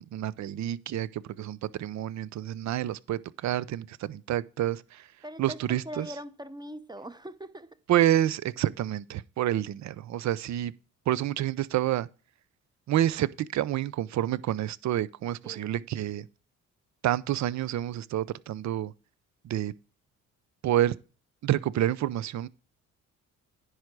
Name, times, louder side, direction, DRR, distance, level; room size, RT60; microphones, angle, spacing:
voice 1, 0.0-5.1 5.4-6.1 7.9-10.7 11.1-12.1 12.9-16.3 17.0-18.9 19.4-19.7 20.6-20.9 21.4-22.5, right 12 dB, 65° right, 0.7 m, -28 dB
voice 2, 5.2-5.6 5.9-7.8 15.4-15.7, equal, 15° right, 0.8 m, -41 dB
10.0 x 4.9 x 6.0 m
cardioid pair, 90°, 30 cm